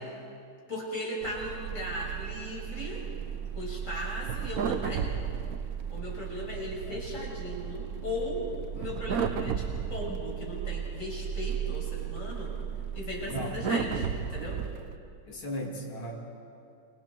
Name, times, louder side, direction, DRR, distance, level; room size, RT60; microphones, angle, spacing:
voice 1, 0.7-3.0 3.5-5.1 5.9-12.5 12.9-14.6, left 1 dB, 35° left, -4 dB, 6.7 m, -37 dB
sound 1, 1.2-15.0, right 7 dB, 55° right, 1.1 m, -34 dB
voice 2, 15.3-16.2, left 1 dB, 75° left, -1 dB, 3.7 m, -37 dB
28.5 x 27.0 x 4.6 m, 2.5 s
omnidirectional pair, 2.2 m